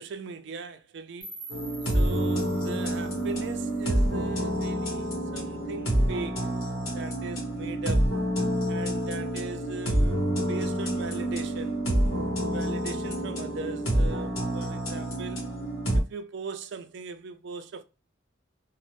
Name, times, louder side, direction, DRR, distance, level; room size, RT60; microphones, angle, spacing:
voice 1, 0.0-1.3 1.9-6.5 6.9-8.2 8.7-11.8 12.5-15.4 16.1-17.8, right 4 dB, 55° right, 0.3 m, -39 dB
sound 1, 1.2-4.2, right 2 dB, 20° right, 0.7 m, -46 dB
sound 2, 1.5-16.0, right 1 dB, 70° left, 1.0 m, -28 dB
2.6 x 2.0 x 3.1 m
head